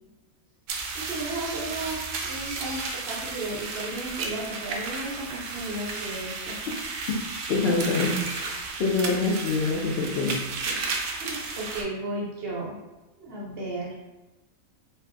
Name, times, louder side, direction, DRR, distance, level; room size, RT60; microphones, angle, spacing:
sound 1, 0.7-11.8, right 4 dB, 75° right, 1.0 m, -33 dB
voice 1, 0.9-6.7 10.7-10.9 11.2-12.8 13.2-14.0, right 2 dB, 50° right, -5 dB, 0.9 m, -34 dB
voice 2, 7.5-10.4, left 3 dB, 65° left, -4 dB, 0.6 m, -25 dB
3.9 x 2.6 x 2.5 m, 1.1 s
omnidirectional pair, 1.5 m